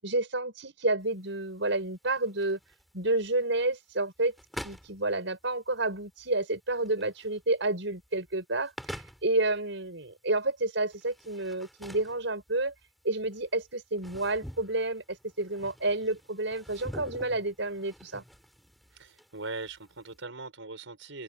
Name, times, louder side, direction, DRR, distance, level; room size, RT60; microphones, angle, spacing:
voice 1, 0.0-2.6 2.9-4.3 4.6-8.7 9.2-12.7 13.0-18.2, right 2 dB, 70° right, 7.0 m, -30 dB
sound 1, 1.0-20.2, equal, ahead, 5.8 m, -47 dB
voice 2, 18.9-21.2, right 3 dB, 90° right, 5.4 m, -40 dB
open air
head